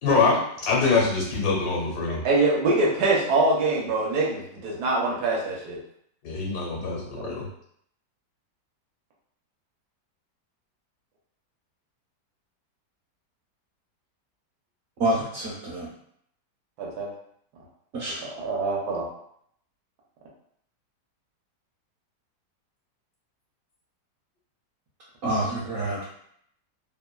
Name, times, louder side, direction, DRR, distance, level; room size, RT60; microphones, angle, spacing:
voice 1, 0.0-2.2 6.2-7.4, left 4 dB, 75° left, -3 dB, 1.2 m, -24 dB
voice 2, 2.2-5.8 7.2-7.3 16.8-17.1 18.4-19.1, right 2 dB, 75° right, -3 dB, 1.2 m, -24 dB
voice 3, 15.0-15.9 17.9-18.3 25.2-26.0, right 1 dB, 55° right, -8 dB, 0.9 m, -27 dB
3.0 x 2.2 x 2.2 m, 0.68 s
omnidirectional pair, 1.9 m